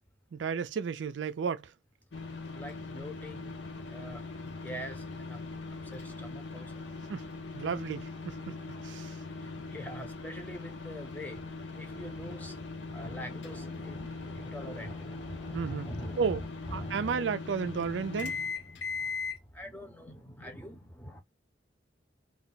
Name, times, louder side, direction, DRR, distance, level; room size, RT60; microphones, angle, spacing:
voice 1, 0.3-1.7 7.1-7.2 7.5-8.5 8.8-9.2 15.5-15.9 16.2-16.4 16.7-18.3, right 6 dB, 80° right, 0.4 m, -32 dB
sound 1, 2.1-19.4, left 4 dB, 70° left, 0.6 m, -40 dB
voice 2, 2.5-5.4 5.7-6.9 9.4-17.4 17.6-17.7 18.0-21.2, equal, 10° left, 0.6 m, -44 dB
2.3 x 2.2 x 3.9 m
head